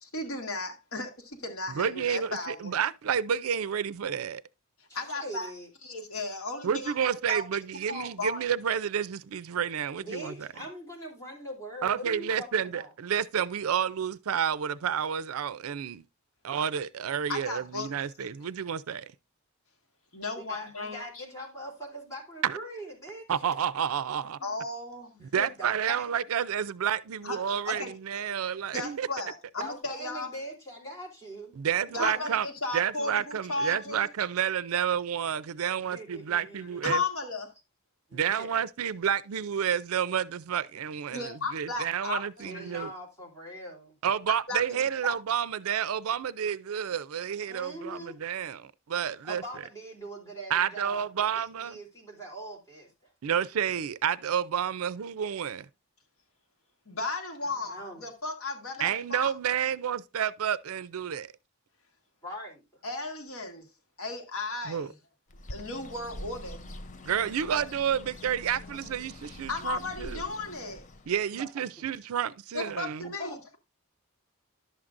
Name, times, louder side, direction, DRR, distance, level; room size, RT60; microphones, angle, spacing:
voice 1, 0.0-2.7 4.9-5.5 5.8-7.4 7.9-8.4 17.3-18.0 20.1-21.2 24.4-25.2 27.2-27.9 28.7-30.3 31.9-34.1 36.8-37.5 41.1-42.6 44.5-44.6 45.0-45.2 56.8-59.3 62.8-63.7 64.0-64.9 65.5-66.7 69.5-70.8 72.5-73.6, left 3 dB, 75° left, 1.6 m, -35 dB
voice 2, 1.8-4.4 6.6-10.5 11.8-16.0 16.4-19.0 22.4-22.6 23.3-24.4 25.3-29.1 31.6-32.5 32.7-37.0 38.1-42.9 44.0-49.4 50.5-51.8 53.2-55.7 58.8-61.3 64.7-64.9 67.1-70.2 71.1-73.1, right 8 dB, 75° right, 0.4 m, -30 dB
voice 3, 4.9-5.7 10.0-12.9 20.3-23.4 24.4-24.5 25.2-26.1 27.8-27.9 29.6-31.5 31.9-32.3 35.7-36.9 38.1-38.5 40.7-40.8 42.4-44.0 47.5-48.2 49.2-53.1 57.7-58.1 62.2-62.8 67.5-67.7 71.3-71.6 72.6-72.8 73.2-73.6, equal, 15° left, 3.2 m, -42 dB
Bird, 65.3-71.2, left 1 dB, 35° left, 0.6 m, -44 dB
11.5 x 7.3 x 2.5 m
head